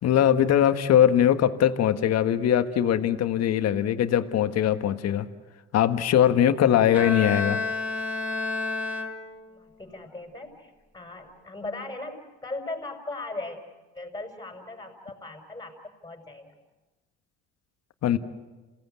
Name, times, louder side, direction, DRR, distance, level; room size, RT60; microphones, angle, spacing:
voice 1, 0.0-5.3 5.7-7.6 18.0-18.2, left 10 dB, 60° left, 10 dB, 1.5 m, -21 dB
Bowed string instrument, 6.9-9.6, left 3 dB, 5° right, 3.9 m, -30 dB
voice 2, 9.5-13.6 13.9-15.7 16.0-16.5, left 2 dB, 15° left, 3 dB, 6.1 m, -38 dB
27.5 x 17.5 x 8.3 m, 1.2 s
supercardioid pair, 65°, 29 cm